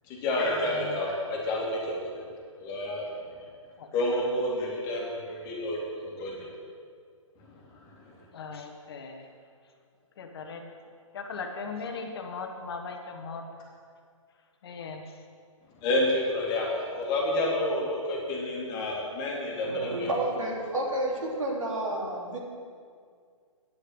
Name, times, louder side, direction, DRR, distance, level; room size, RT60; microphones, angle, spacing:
voice 1, 0.1-2.0 2.6-3.1 3.9-5.8 6.0-6.5 7.7-8.1 15.8-20.1, left 1 dB, 25° left, -2 dB, 2.4 m, -29 dB
voice 2, 0.6-1.0 1.3-1.4 3.8-3.9 8.3-9.3 10.2-10.7 11.1-13.5 14.6-15.2, left 4 dB, 45° left, 4 dB, 1.2 m, -38 dB
voice 3, 19.6-22.4, right 1 dB, 75° right, -2 dB, 3.3 m, -30 dB
9.8 x 6.7 x 8.0 m, 2.1 s
figure-of-eight pair, 135°, 17 cm